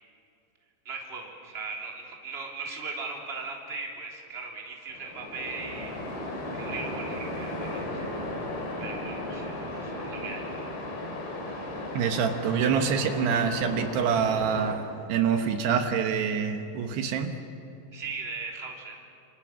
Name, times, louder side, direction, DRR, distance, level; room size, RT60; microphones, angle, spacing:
voice 1, 0.8-8.0 8.8-10.8 17.9-19.0, right 4 dB, 15° right, -1 dB, 2.7 m, -39 dB
Waves surf, 4.9-14.7, left 1 dB, 80° left, 6.1 m, -35 dB
voice 2, 12.0-14.8 15.1-17.3, right 7 dB, 75° right, 5 dB, 3.2 m, -26 dB
28.5 x 27.5 x 6.2 m, 2.7 s
omnidirectional pair, 5.0 m